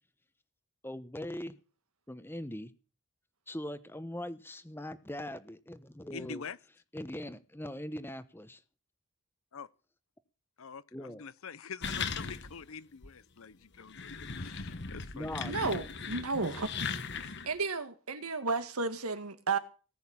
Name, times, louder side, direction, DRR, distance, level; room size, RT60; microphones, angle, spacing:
voice 1, 0.8-1.5 2.1-2.7 3.5-6.4 6.9-8.6 10.9-11.2 15.1-15.8, left 1 dB, 10° left, 1.0 m, -41 dB
voice 2, 6.1-6.6 9.5-9.7 10.6-15.6, left 6 dB, 70° left, 0.7 m, -46 dB
sound 1, 11.8-12.7 13.0-13.1 13.7-17.5, left 5 dB, 50° left, 1.2 m, -38 dB
voice 3, 15.4-16.7 17.2-19.6, right 4 dB, 85° right, 1.8 m, -33 dB
19.0 x 6.4 x 8.7 m
head